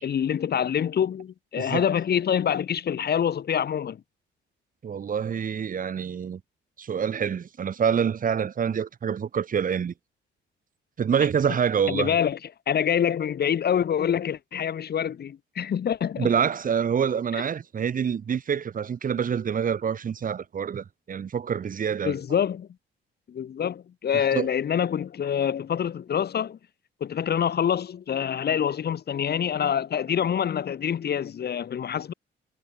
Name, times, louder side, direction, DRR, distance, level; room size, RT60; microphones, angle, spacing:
voice 1, 0.0-4.0 11.9-12.4 12.7-16.3 22.0-22.7 23.3-26.6 27.0-32.1, left 8 dB, 55° left, 2.1 m, -26 dB
voice 2, 4.8-6.4 6.8-9.9 11.0-12.1 16.2-22.2 24.1-24.5, right 7 dB, 45° right, 1.3 m, -26 dB
cardioid pair, 90°, 20 cm